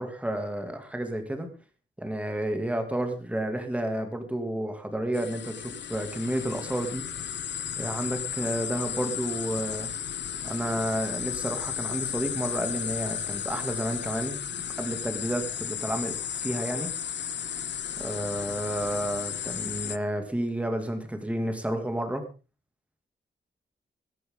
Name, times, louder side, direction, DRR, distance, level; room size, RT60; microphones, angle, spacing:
voice 1, 0.0-1.5 2.0-7.0 7.8-9.9 10.4-14.4 14.8-16.1 16.4-16.9 18.0-22.2, right 1 dB, 5° right, 5 dB, 2.6 m, -31 dB
sound 1, 5.1-20.0, left 9 dB, 65° left, 0.8 m, -34 dB
22.5 x 11.0 x 3.9 m, 0.33 s
wide cardioid pair, 180°, 20 cm